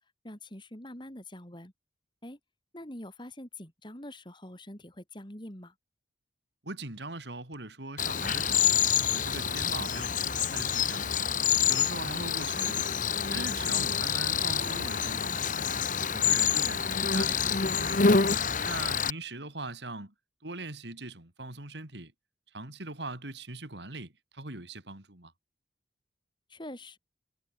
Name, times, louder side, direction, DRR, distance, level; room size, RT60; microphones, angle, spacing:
voice 1, 0.2-1.7 2.2-2.4 2.7-5.7 26.5-27.0, left 1 dB, 25° left, 4.0 m, -44 dB
voice 2, 6.6-8.7 9.1-11.2 11.7-12.8 13.3-15.8 16.1-18.1 18.6-20.1 20.4-22.1 22.5-25.3, right 2 dB, 70° right, 3.8 m, -41 dB
Cricket, 8.0-19.1, left 7 dB, 45° left, 1.4 m, -27 dB
head